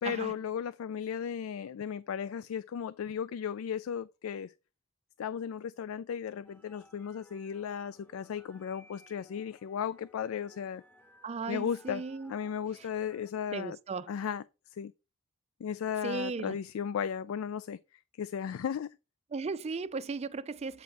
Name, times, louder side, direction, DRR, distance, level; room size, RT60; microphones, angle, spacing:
voice 1, 0.0-4.5 5.2-10.8 11.5-12.0 12.3-13.8 14.1-14.4 14.7-14.9 15.6-19.0, left 7 dB, 80° left, 0.3 m, -35 dB
sound 1, 6.4-13.3, left 1 dB, 10° left, 1.0 m, -60 dB
voice 2, 11.2-12.3 12.8-12.9 13.5-14.1 16.0-16.6 19.3-20.8, right 4 dB, 30° right, 0.4 m, -36 dB
8.0 x 4.6 x 4.2 m
head